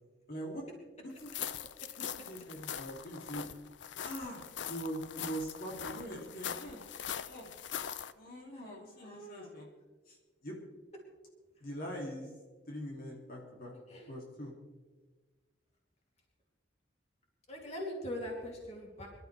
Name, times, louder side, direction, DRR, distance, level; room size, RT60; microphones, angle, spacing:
voice 1, 0.3-0.6 1.2-1.3 2.1-3.5 4.0-4.4 4.7-6.8 7.3-7.5 8.1-9.7 10.1-10.2 10.4-10.5 11.6-12.3 12.7-13.7 14.1-14.5, equal, 55° left, -2 dB, 2.8 m, -42 dB
sound 1, 1.2-8.1, left 8 dB, 75° left, 0.6 m, -42 dB
voice 2, 8.9-9.5 13.9-14.1 17.5-19.1, left 1 dB, 40° left, -1 dB, 2.9 m, -42 dB
24.5 x 12.5 x 3.4 m, 1.3 s
head